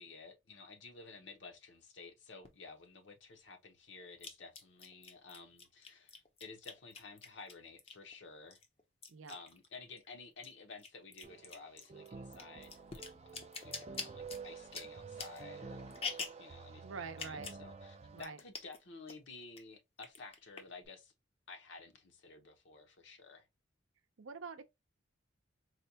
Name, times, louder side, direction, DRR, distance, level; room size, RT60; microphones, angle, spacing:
voice 1, 0.0-8.6 9.3-13.0 13.6-15.9 16.4-21.1 21.5-23.5, left 4 dB, 65° left, 0.8 m, -53 dB
sound 1, 2.4-2.5 4.2-8.1 8.5-10.1 10.3-16.5 17.1-17.6 17.9-18.0 18.2-18.8 19.1-19.6 20.0-20.9, left 5 dB, 30° left, 0.5 m, -46 dB
sound 2, 11.2-18.2, right 4 dB, 30° right, 0.3 m, -50 dB
voice 2, 16.8-17.6 18.1-18.4 24.2-24.6, right 5 dB, 80° right, 0.5 m, -46 dB
4.2 x 2.2 x 2.7 m
head